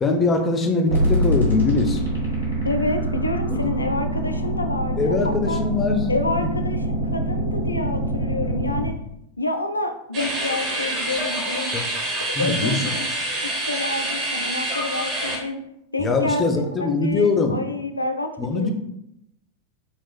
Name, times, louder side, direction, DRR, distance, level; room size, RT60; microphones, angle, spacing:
voice 1, 0.0-2.0 3.5-3.7 5.0-6.0 11.7-11.8 12.4-12.8 16.0-17.6 18.4-18.7, left 3 dB, 20° left, 4 dB, 0.6 m, -22 dB
sound 1, 0.9-8.9, equal, 90° right, 1.2 m, -24 dB
voice 2, 2.6-5.6 6.1-8.9 9.4-11.8 12.4-15.6 15.9-16.4 16.8-18.7, left 2 dB, 80° left, 6 dB, 0.4 m, -28 dB
sound 2, 10.1-15.4, right 1 dB, 45° right, 1.0 m, -27 dB
5.7 x 2.4 x 2.4 m, 0.80 s
figure-of-eight pair, 90°, 0 cm